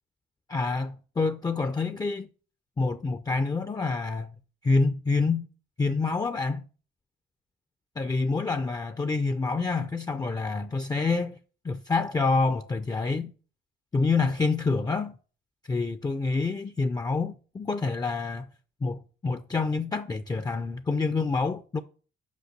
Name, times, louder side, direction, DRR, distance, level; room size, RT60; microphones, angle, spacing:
voice 1, 0.5-2.3 2.8-4.3 4.6-5.4 5.8-6.6 8.0-11.4 11.6-13.3 13.9-15.2 15.7-18.5 18.8-21.8, left 3 dB, 20° left, 0.5 m, -27 dB
5.7 x 5.3 x 6.4 m
cardioid pair, 90°, 20 cm